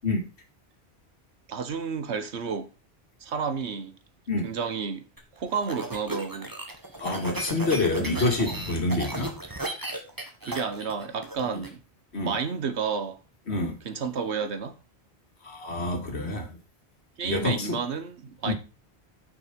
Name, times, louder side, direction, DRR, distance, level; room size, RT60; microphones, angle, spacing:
voice 1, 1.5-2.7 3.2-3.9 4.4-5.0 5.4-6.5 10.4-11.8 12.2-13.2 13.8-14.8 17.2-18.5, right 5 dB, 85° right, 1.4 m, -31 dB
sound 1, 5.2-11.7, right 1 dB, 20° right, 1.7 m, -35 dB
voice 2, 7.0-9.3 12.1-12.3 13.5-13.7 15.4-16.5 17.2-17.8 18.4-18.5, left 2 dB, 80° left, 2.4 m, -27 dB
9.6 x 6.0 x 5.1 m
omnidirectional pair, 1.1 m